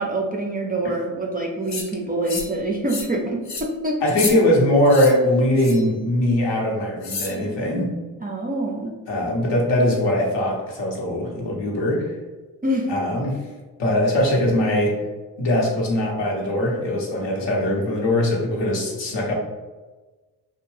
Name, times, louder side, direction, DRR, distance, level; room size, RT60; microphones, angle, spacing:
voice 1, 0.0-4.1 8.2-8.9 12.6-12.9, right 1 dB, 20° right, -1 dB, 0.4 m, -25 dB
sound 1, 1.7-1.9 2.3-2.6 2.9-3.1 3.4-3.7 4.1-4.3 4.9-5.1 5.6-5.9 7.0-7.4, left 4 dB, 35° left, 0.6 m, -30 dB
voice 2, 4.0-7.9 9.1-12.2 12.9-13.4 13.8-15.0 15.4-19.3, left 1 dB, 60° left, -2 dB, 1.0 m, -21 dB
2.5 x 2.2 x 3.2 m, 1.2 s
hypercardioid pair, 45°, 48 cm